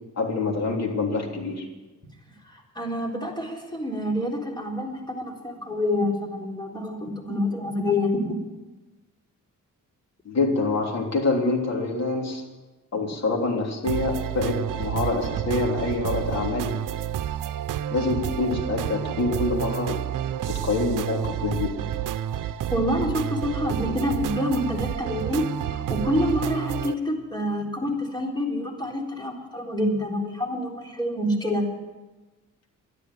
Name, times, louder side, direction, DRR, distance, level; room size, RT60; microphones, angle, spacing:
voice 1, 0.1-1.7 10.2-12.4 12.9-16.7 17.9-20.0 20.5-21.7 23.9-24.0, left 3 dB, 55° left, 1 dB, 3.4 m, -26 dB
voice 2, 2.4-8.3 22.7-31.7, left 1 dB, 15° left, 0 dB, 3.9 m, -27 dB
sound 1, 13.8-26.9, right 11 dB, 75° right, 0.8 m, -30 dB
12.5 x 11.0 x 9.7 m, 1.2 s
cardioid pair, 90°, 32 cm